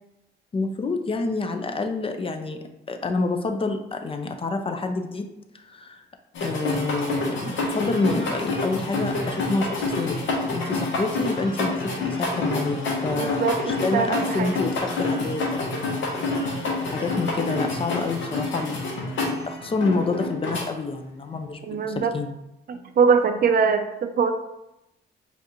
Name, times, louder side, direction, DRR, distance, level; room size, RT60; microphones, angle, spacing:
voice 1, 0.5-5.3 5.5-6.0 6.4-10.2 10.5-16.2 16.5-22.3, left 3 dB, 30° left, 6 dB, 0.4 m, -28 dB
sound 1, 6.3-20.6, left 2 dB, 75° left, 1.0 m, -28 dB
voice 2, 13.1-14.5 21.7-22.1 22.7-24.3, right 5 dB, 50° right, 8 dB, 0.4 m, -22 dB
5.1 x 2.5 x 3.0 m, 0.90 s
cardioid pair, 90°, 20 cm